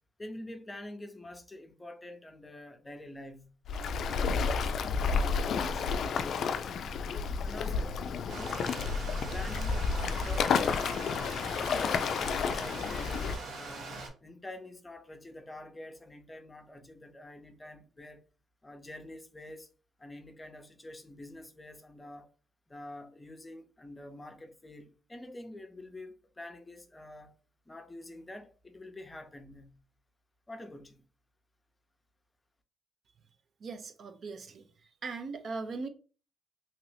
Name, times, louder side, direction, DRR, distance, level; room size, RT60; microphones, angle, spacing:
voice 1, 0.2-3.6 4.0-6.6 7.4-8.0 8.3-18.3 18.6-19.7 20.0-22.3 22.7-27.4 27.7-29.8 30.5-31.1, left 1 dB, 15° left, 0.6 m, -47 dB
Waves surf, 3.7-13.4, left 5 dB, 65° left, 0.3 m, -31 dB
Bass guitar, 5.1-8.8, right 5 dB, 35° right, 0.8 m, -54 dB
Stream, 8.3-14.1, right 3 dB, 75° right, 1.1 m, -42 dB
voice 2, 33.6-34.6 35.0-35.9, right 4 dB, 55° right, 0.5 m, -39 dB
2.9 x 2.5 x 3.3 m
cardioid pair, 90°, 0 cm